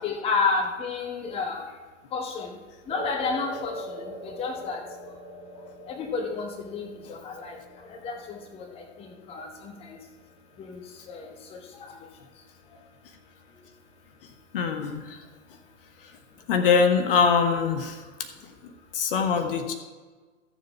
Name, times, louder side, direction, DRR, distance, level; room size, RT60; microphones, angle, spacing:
voice 1, 0.0-1.6 2.1-2.6 2.9-4.8 5.9-7.6 7.9-10.0 10.6-10.8 11.1-11.3 11.5-11.9, left 4 dB, 15° left, 3 dB, 1.1 m, -31 dB
sound 1, 2.9-11.4, right 1 dB, 45° right, 2.2 m, -43 dB
voice 2, 14.5-15.2 16.0-16.1 16.5-18.0 18.9-19.7, left 5 dB, 45° left, 6 dB, 1.2 m, -23 dB
14.0 x 7.1 x 4.7 m, 1.4 s
figure-of-eight pair, 110°, 37 cm